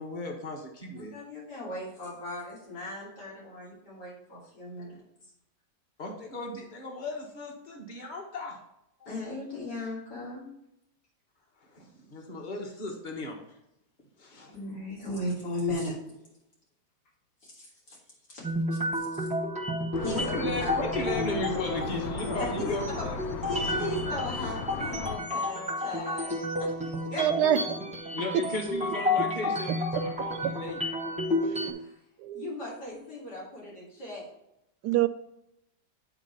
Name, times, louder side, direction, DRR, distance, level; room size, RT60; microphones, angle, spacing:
voice 1, 0.0-1.1 6.0-8.6 9.0-9.1 11.7-13.4 14.2-14.6 20.1-23.2 27.3-27.4 28.1-30.8, left 2 dB, 30° left, 1.4 m, -36 dB
voice 2, 1.1-5.0 9.1-10.5 14.5-15.9 17.4-18.0 18.3-18.4 19.2-19.3 20.0-20.2 20.6-20.7 22.7-23.1 23.5-26.3 27.1-27.2 31.8-31.9 32.3-34.3, left 1 dB, 85° left, 3.8 m, -36 dB
sound 1, 18.4-31.7, left 1 dB, 5° right, 0.8 m, -31 dB
sound 2, 19.9-25.2, left 5 dB, 70° left, 1.2 m, -37 dB
voice 3, 27.2-28.0 29.1-29.2 29.9-30.5 31.5-31.8 32.2-32.5 34.8-35.1, right 11 dB, 85° right, 1.2 m, -28 dB
8.9 x 4.0 x 5.5 m
omnidirectional pair, 1.7 m